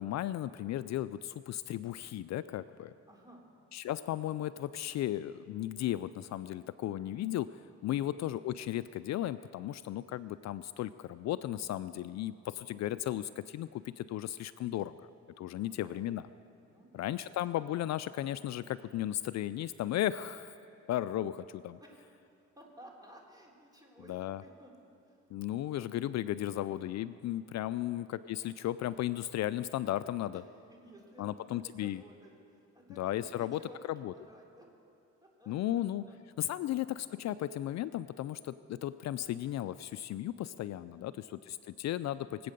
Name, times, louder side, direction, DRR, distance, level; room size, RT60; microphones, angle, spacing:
voice 1, 0.0-2.9 3.7-14.9 15.4-16.2 16.9-20.5 20.9-21.8 24.1-24.4 25.3-30.4 31.2-32.0 33.0-33.6 33.9-34.1 35.5-36.1 36.4-42.5, left 13 dB, 65° left, 14 dB, 0.4 m, -35 dB
voice 2, 3.1-3.5 7.9-8.2 15.5-16.0 16.6-17.1 21.8-22.3 22.5-24.7 25.0-25.2 27.8-28.0 30.3-30.4 30.7-34.7 35.2-36.2 36.5-36.7 40.9-41.3, equal, 10° right, -1 dB, 3.4 m, -56 dB
22.0 x 8.5 x 6.7 m, 2.7 s
cardioid pair, 90°, 30 cm